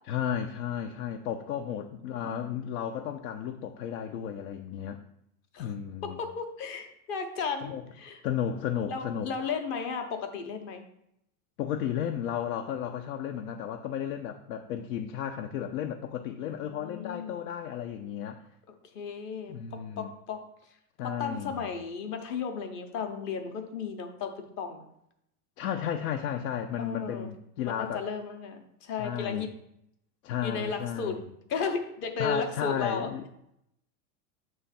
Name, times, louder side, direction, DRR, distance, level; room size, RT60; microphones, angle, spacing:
voice 1, 0.1-5.0 5.6-6.2 7.6-7.8 8.2-9.3 11.6-18.4 19.5-20.1 21.0-21.7 25.6-28.1 29.0-29.5 30.2-31.2 32.2-33.2, left 9 dB, 80° left, 4 dB, 0.7 m, -33 dB
voice 2, 2.3-2.6 5.5-5.7 6.0-8.2 8.9-10.8 16.4-17.5 18.9-20.4 21.0-24.9 26.8-27.3 27.6-29.5 30.4-31.2 31.5-33.1, left 5 dB, 30° left, 5 dB, 0.6 m, -35 dB
8.0 x 3.1 x 5.6 m, 0.78 s
supercardioid pair, 165°, 44 cm